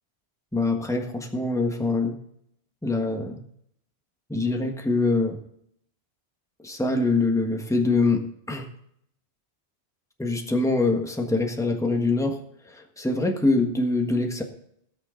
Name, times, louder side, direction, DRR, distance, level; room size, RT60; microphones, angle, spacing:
voice 1, 0.5-2.2 2.8-3.4 4.3-5.4 6.6-8.7 10.2-12.4 12.7-14.4, left 3 dB, 5° left, 3 dB, 1.4 m, -24 dB
19.0 x 6.9 x 3.8 m, 0.70 s
omnidirectional pair, 1.1 m